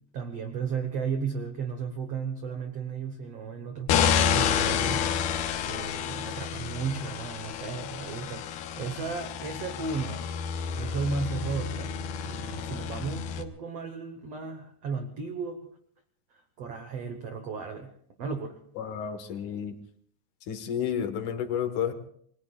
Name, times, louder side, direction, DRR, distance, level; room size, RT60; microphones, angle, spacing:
voice 1, 0.0-10.3 10.8-15.7 16.6-18.6, right 5 dB, 85° right, 6 dB, 1.3 m, -35 dB
sound 1, 3.9-13.4, left 8 dB, 80° left, 2.9 m, -29 dB
voice 2, 18.8-19.8 20.5-21.9, left 8 dB, 60° left, 7 dB, 2.5 m, -31 dB
28.5 x 21.0 x 2.4 m, 0.62 s
omnidirectional pair, 4.8 m